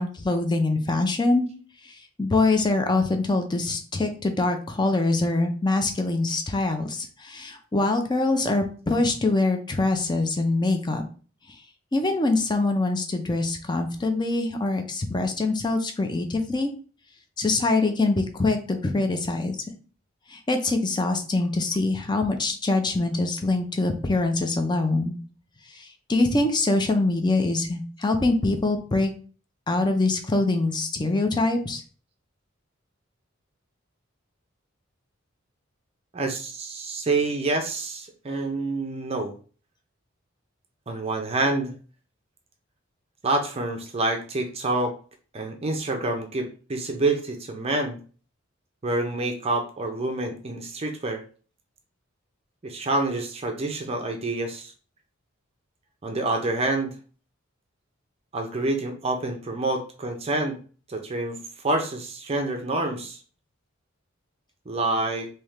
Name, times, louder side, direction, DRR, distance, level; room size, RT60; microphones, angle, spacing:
voice 1, 0.0-1.5 2.2-11.0 11.9-16.7 17.4-19.6 20.3-25.2 25.7-29.1 29.7-31.8, left 2 dB, 20° left, 5 dB, 0.5 m, -24 dB
voice 2, 36.1-39.4 40.9-41.7 43.2-44.9 45.3-48.0 48.8-51.2 52.6-54.7 56.0-56.9 58.3-60.6 60.9-63.2 64.7-65.3, right 2 dB, 30° right, 4 dB, 0.5 m, -27 dB
3.5 x 2.8 x 3.1 m, 0.39 s
head